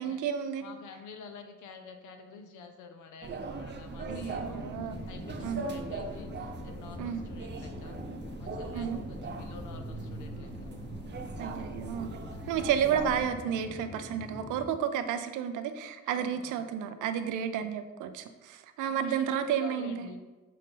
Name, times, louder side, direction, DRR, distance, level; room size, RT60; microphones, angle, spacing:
voice 1, 0.0-0.7 4.1-5.0 5.4-5.6 7.0-7.2 8.7-9.0 11.4-12.1 12.5-20.1, right 8 dB, 85° right, 9 dB, 0.6 m, -31 dB
voice 2, 0.6-8.0 8.4-10.7 12.3-12.4 16.1-16.7 17.5-17.7 18.8-20.2, left 5 dB, 80° left, 6 dB, 0.8 m, -49 dB
sound 1, 3.2-13.3, right 4 dB, 35° right, 0.7 m, -40 dB
sound 2, 4.0-14.8, left 4 dB, 15° left, 0.3 m, -44 dB
6.5 x 2.7 x 5.4 m, 1.2 s
cardioid pair, 90°, 30 cm